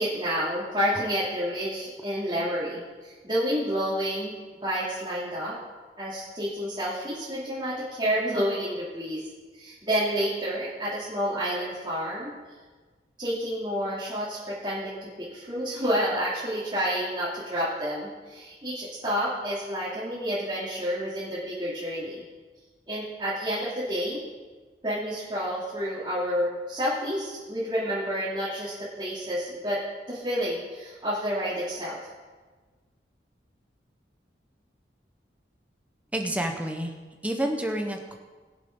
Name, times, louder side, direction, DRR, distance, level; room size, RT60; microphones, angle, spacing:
voice 1, 0.0-5.6 6.0-9.2 9.5-12.3 13.2-22.2 22.9-24.2 24.8-29.8 30.1-32.0, equal, 25° right, -10 dB, 2.7 m, -29 dB
voice 2, 36.1-36.9 37.2-38.2, right 1 dB, 10° right, 3 dB, 1.0 m, -29 dB
21.5 x 7.4 x 3.8 m, 1.4 s
head